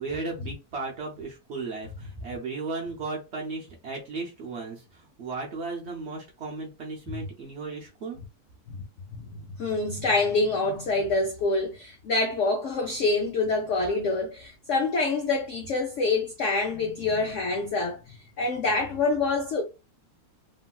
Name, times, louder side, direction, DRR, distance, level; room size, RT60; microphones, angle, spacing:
voice 1, 0.0-8.2, right 3 dB, 65° right, 0.6 m, -35 dB
voice 2, 9.6-19.6, left 3 dB, 80° left, 0.6 m, -26 dB
3.0 x 2.6 x 2.2 m
omnidirectional pair, 1.9 m